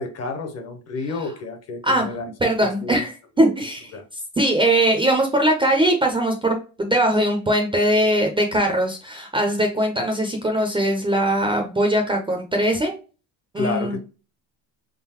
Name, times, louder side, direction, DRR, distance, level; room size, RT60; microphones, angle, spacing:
voice 1, 0.0-3.0 3.4-3.5 3.9-4.0 13.6-14.0, left 3 dB, 35° left, 0.8 m, -30 dB
voice 2, 2.4-3.9 4.4-12.9 13.5-14.0, right 1 dB, 10° right, 0.5 m, -21 dB
3.8 x 3.8 x 2.8 m
cardioid pair, 155°, 43 cm